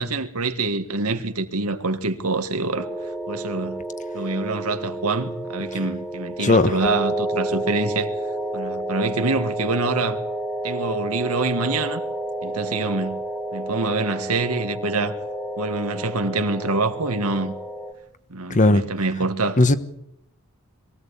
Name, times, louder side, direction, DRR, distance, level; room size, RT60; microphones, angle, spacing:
voice 1, 0.0-2.9 3.3-3.8 4.1-8.1 8.5-10.2 10.6-12.0 12.4-13.2 13.5-15.2 15.6-17.5 18.3-19.7, right 3 dB, 85° right, 1.8 m, -25 dB
sound 1, 2.7-17.9, right 1 dB, ahead, 1.5 m, -30 dB
voice 2, 6.4-6.8 18.5-18.9 19.6-19.7, left 2 dB, 35° left, 1.1 m, -16 dB
22.5 x 16.0 x 8.5 m
head